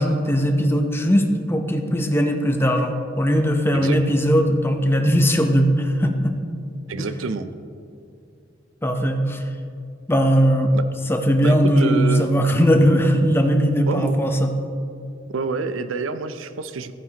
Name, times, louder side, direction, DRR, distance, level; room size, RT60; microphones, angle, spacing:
voice 1, 0.0-6.4 8.8-9.4 10.1-10.7 11.1-14.5, equal, 10° left, 5 dB, 0.7 m, -19 dB
voice 2, 6.9-7.5 10.7-10.8 11.4-12.3 13.9-14.1 15.3-16.9, right 4 dB, 80° right, 11 dB, 0.5 m, -27 dB
15.0 x 9.2 x 2.9 m, 2.5 s
head